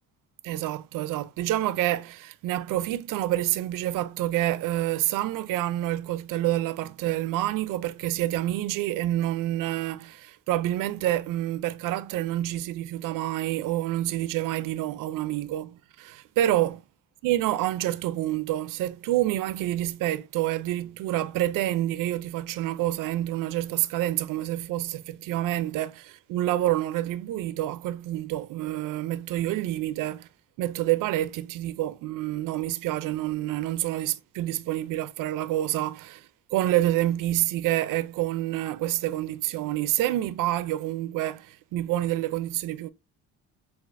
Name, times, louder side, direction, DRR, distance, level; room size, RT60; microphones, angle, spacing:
voice 1, 0.4-16.8 17.2-30.3 30.6-42.9, right 14 dB, 75° right, 0.5 m, -28 dB
6.4 x 2.5 x 2.5 m
cardioid pair, 145°, 32 cm